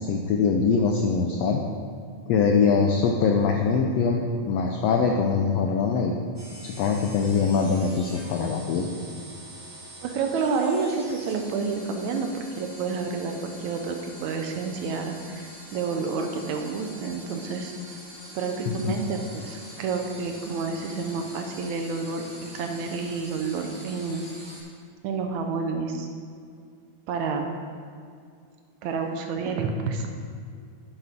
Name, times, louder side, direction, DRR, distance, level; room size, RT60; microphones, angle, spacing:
voice 1, 0.0-1.6 2.3-6.1 6.6-8.9 18.7-19.0, left 5 dB, 80° left, 2 dB, 1.4 m, -23 dB
sound 1, 6.3-24.6, equal, 15° right, 2.0 m, -45 dB
voice 2, 10.0-17.7 18.3-24.3 25.0-26.1 27.1-27.5 28.8-30.1, right 4 dB, 75° right, 4 dB, 2.0 m, -29 dB
11.0 x 8.2 x 3.6 m, 2.2 s
omnidirectional pair, 3.6 m